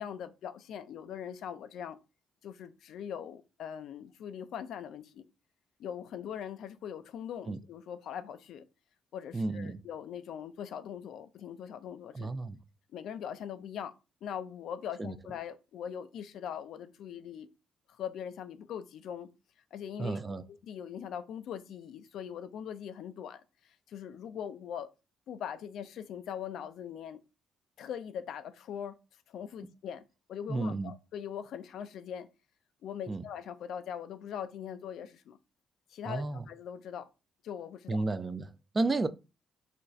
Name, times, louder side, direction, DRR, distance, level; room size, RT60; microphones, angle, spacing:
voice 1, 0.0-2.0 2.4-5.2 5.8-8.6 9.1-12.3 12.9-13.9 14.2-17.5 18.0-19.3 19.7-20.2 20.6-23.4 23.9-24.9 25.3-27.2 27.8-29.0 29.3-30.0 30.3-32.3 32.8-35.4 35.9-37.1 37.4-38.0, left 8 dB, 75° left, 0.3 m, -41 dB
voice 2, 9.3-9.8 12.1-12.6 15.0-15.1 20.0-20.4 30.5-30.9 33.1-33.2 36.1-36.4 37.9-38.5 38.7-39.1, right 3 dB, 30° right, 0.3 m, -32 dB
2.5 x 2.3 x 4.0 m
cardioid pair, 90°, 0 cm